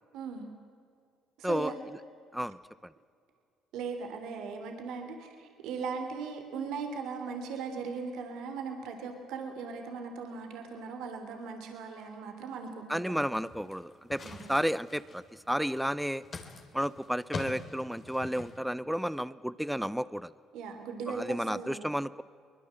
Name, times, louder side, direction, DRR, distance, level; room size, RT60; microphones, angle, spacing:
voice 1, 0.1-0.5 1.4-1.7 3.7-13.2 14.2-14.5 20.5-21.9, right 5 dB, 75° right, 5 dB, 3.3 m, -39 dB
voice 2, 12.9-14.2 14.5-16.2 16.7-20.3 21.1-22.2, equal, ahead, 17 dB, 0.6 m, -32 dB
sound 1, 13.3-18.6, left 4 dB, 40° left, 2.9 m, -44 dB
23.5 x 21.0 x 7.7 m, 2.3 s
supercardioid pair, 85°, 0 cm